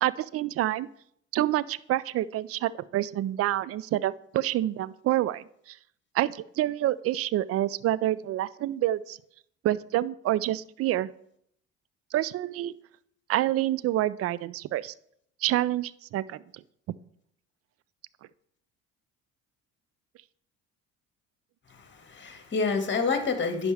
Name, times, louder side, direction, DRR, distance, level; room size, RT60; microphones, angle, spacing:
voice 1, 0.0-0.9 1.3-5.8 6.1-9.2 9.6-11.1 12.1-12.7 13.3-14.9 15.4-16.6, right 14 dB, 40° right, 19 dB, 0.4 m, -27 dB
voice 2, 21.7-23.7, left 4 dB, 30° left, 6 dB, 1.8 m, -28 dB
10.5 x 5.4 x 3.4 m, 0.70 s
hypercardioid pair, 60°, 38 cm